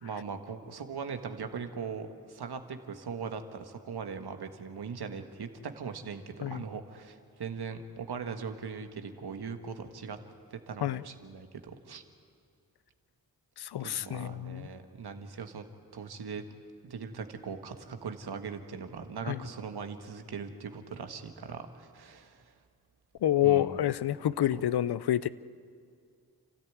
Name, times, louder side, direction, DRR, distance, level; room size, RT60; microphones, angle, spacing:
voice 1, 0.0-10.2 10.5-12.0 13.8-15.7 15.9-16.4 16.8-22.5 23.4-23.9, right 5 dB, 85° right, 7 dB, 1.6 m, -40 dB
voice 2, 13.6-14.7 19.3-19.4 23.2-25.3, left 12 dB, 85° left, 17 dB, 0.6 m, -28 dB
29.5 x 13.5 x 9.5 m, 2.3 s
cardioid pair, 45°, 38 cm